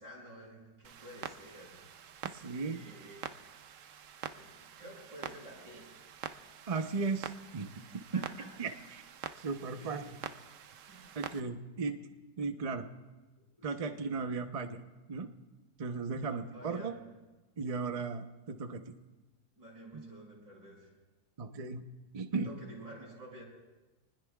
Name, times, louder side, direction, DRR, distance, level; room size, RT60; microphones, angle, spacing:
voice 1, 0.0-1.9 2.6-3.4 4.3-6.0 6.5-6.7 7.9-8.7 9.8-10.2 10.9-11.2 13.6-14.1 16.2-17.1 19.6-21.0 22.4-23.4, right 1 dB, 85° right, -4 dB, 6.5 m, -51 dB
Clock, 0.8-11.4, right 8 dB, 65° right, 0.8 m, -47 dB
voice 2, 2.3-2.8 6.7-7.7 8.1-8.2 8.6-9.0 9.4-10.0 11.2-12.0 12.4-12.9 13.6-14.8 15.1-15.3 15.8-16.9 17.6-18.8 21.4-21.8 22.1-22.5, right 4 dB, 40° right, 6 dB, 0.5 m, -36 dB
28.0 x 20.5 x 2.4 m, 1.2 s
omnidirectional pair, 2.0 m